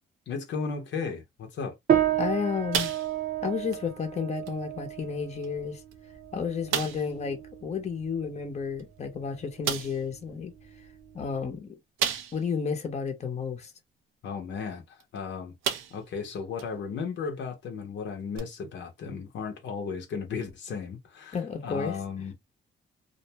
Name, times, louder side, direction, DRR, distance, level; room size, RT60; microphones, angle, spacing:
voice 1, 0.3-1.8 14.2-15.5 15.9-21.4 21.6-22.3, left 5 dB, 65° left, 0.7 m, -35 dB
sound 1, 1.9-11.5, right 10 dB, 50° right, 0.7 m, -32 dB
voice 2, 2.2-2.9 3.4-5.8 6.3-10.5 11.1-11.7 12.3-13.7 21.3-22.0, left 6 dB, 35° left, 0.8 m, -32 dB
sound 2, 2.7-3.4 3.7-3.9 4.5-4.6 5.4-5.5 5.9-6.0 6.7-7.1 8.8-8.9 9.6-10.0 12.0-12.6 13.1-13.2 15.0-15.2 15.6-16.1 16.6-16.7 18.3-18.4, right 9 dB, 90° right, 0.6 m, -31 dB
2.5 x 2.2 x 2.8 m
cardioid pair, 90°, 20 cm